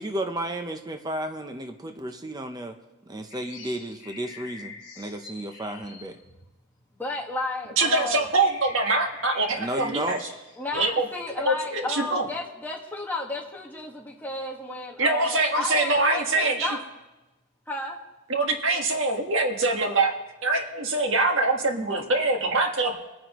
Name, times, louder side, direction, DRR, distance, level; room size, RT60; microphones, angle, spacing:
voice 1, 0.0-2.8 3.1-6.2 9.6-10.2, right 1 dB, 20° right, 5 dB, 0.7 m, -33 dB
sound 1, 3.3-7.2 7.8-7.9 8.2-10.7, left 3 dB, 55° left, 3.3 m, -45 dB
voice 2, 7.0-8.3 10.6-16.8 17.7-18.0, left 2 dB, 10° left, -2 dB, 1.6 m, -33 dB
voice 3, 7.8-10.2 10.7-11.0 11.4-12.3 15.0-16.8 18.3-20.1 20.4-23.0, right 2 dB, 70° right, 3 dB, 1.6 m, -24 dB
24.0 x 9.3 x 3.1 m, 1.1 s
head